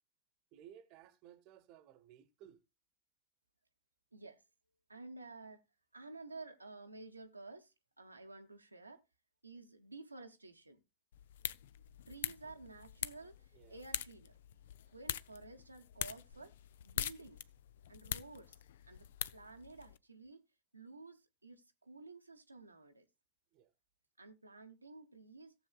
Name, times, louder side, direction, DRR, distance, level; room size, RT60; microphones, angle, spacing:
voice 1, 0.5-2.6 13.5-13.8 23.5-23.7, right 10 dB, 40° right, 1.0 m, -58 dB
voice 2, 4.1-4.4 4.9-5.6 5.9-9.0 9.4-10.8 12.1-14.4 14.9-16.5 16.8-17.4 17.9-18.6 18.8-20.4 20.7-23.1 24.2-25.5, right 3 dB, 85° right, 0.9 m, -52 dB
sound 1, 11.1-20.0, left 11 dB, 60° left, 0.4 m, -44 dB
17.5 x 7.0 x 2.3 m
figure-of-eight pair, 90°, 0 cm